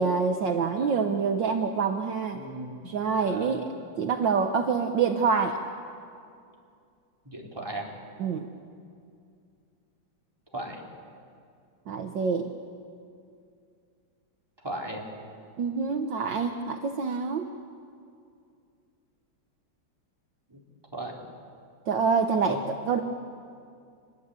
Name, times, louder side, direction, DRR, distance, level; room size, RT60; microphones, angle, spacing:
voice 1, 0.0-2.4 2.8-3.6 4.0-5.6 8.2-8.5 11.9-12.5 15.6-17.5 21.9-23.0, right 5 dB, 65° right, 5 dB, 1.7 m, -26 dB
voice 2, 2.3-2.9 3.2-3.7 7.3-7.8 10.5-10.8 14.6-15.1 20.5-20.6 20.9-21.3 22.5-22.6, right 1 dB, 10° right, -2 dB, 3.5 m, -37 dB
26.0 x 21.0 x 8.3 m, 2.4 s
omnidirectional pair, 2.3 m